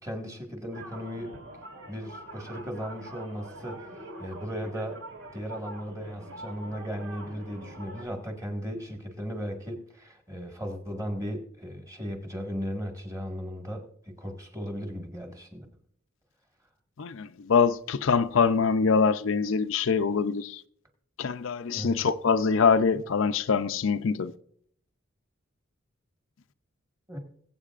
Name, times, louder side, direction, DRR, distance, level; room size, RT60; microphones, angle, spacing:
voice 1, 0.0-1.3 1.9-5.0 5.3-13.9 14.2-15.7 21.7-22.0 27.1-27.2, equal, 15° right, 1.6 m, -36 dB
sound 1, 0.7-8.1, right 1 dB, 70° right, 3.8 m, -44 dB
voice 2, 17.0-20.6 21.2-24.3, left 5 dB, 75° left, 0.5 m, -24 dB
21.5 x 8.1 x 2.5 m
head